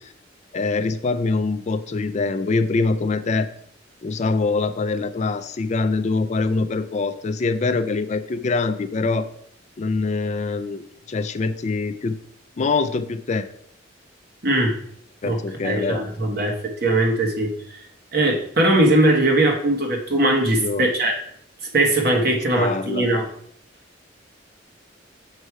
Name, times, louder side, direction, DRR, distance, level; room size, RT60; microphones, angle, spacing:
voice 1, 0.5-3.5 4.0-9.3 9.8-10.8 11.1-12.2 12.6-13.5 15.2-16.0 20.6-20.9 22.6-23.1, left 3 dB, 40° left, 9 dB, 0.4 m, -24 dB
voice 2, 14.4-14.8 15.2-17.8 18.1-21.2 21.7-23.3, right 1 dB, 55° right, 2 dB, 1.3 m, -20 dB
6.5 x 4.8 x 4.5 m, 0.66 s
head